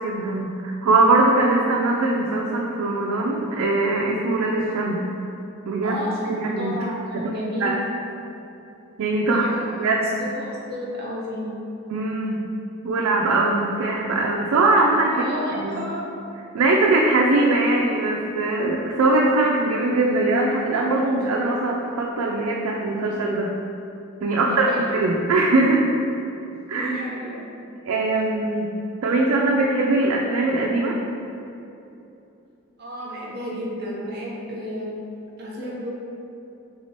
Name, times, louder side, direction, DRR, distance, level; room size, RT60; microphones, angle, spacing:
voice 1, 0.0-5.0 5.7-6.0 6.3-7.3 7.6-7.8 9.0-9.5 9.8-10.3 11.9-12.4 12.8-15.1 15.6-15.8 16.5-23.5 24.2-25.8 26.7-26.9 27.8-28.7 29.0-31.0, right 2 dB, 75° right, -1 dB, 0.3 m, -21 dB
voice 2, 5.8-6.2 6.6-7.7 9.2-9.6 10.0-11.5 15.1-16.1 24.4-24.8 26.7-27.4 32.8-34.9 35.4-35.9, equal, 45° right, -5 dB, 0.8 m, -32 dB
3.3 x 2.9 x 4.3 m, 2.8 s
head